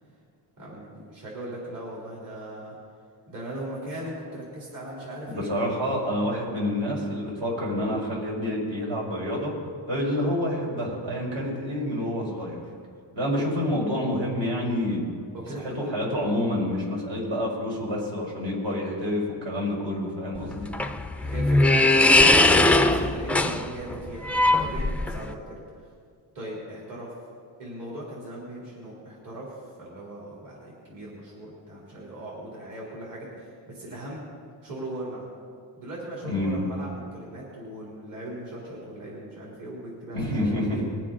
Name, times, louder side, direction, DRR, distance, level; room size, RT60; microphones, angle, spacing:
voice 1, 0.6-2.7 3.3-5.5 15.3-15.9 21.2-24.3 24.6-25.6 26.3-27.1 27.6-34.2 34.6-35.3 35.8-40.8, right 1 dB, 45° right, -6 dB, 3.9 m, -39 dB
voice 2, 5.3-9.5 9.9-12.6 13.1-15.0 15.5-20.7 36.2-36.6 40.1-40.8, left 1 dB, 65° right, -3 dB, 4.5 m, -28 dB
sound 1, 20.4-25.3, left 2 dB, 5° left, 0.4 m, -20 dB
21.5 x 7.5 x 5.5 m, 2.1 s
cardioid pair, 130°, 45 cm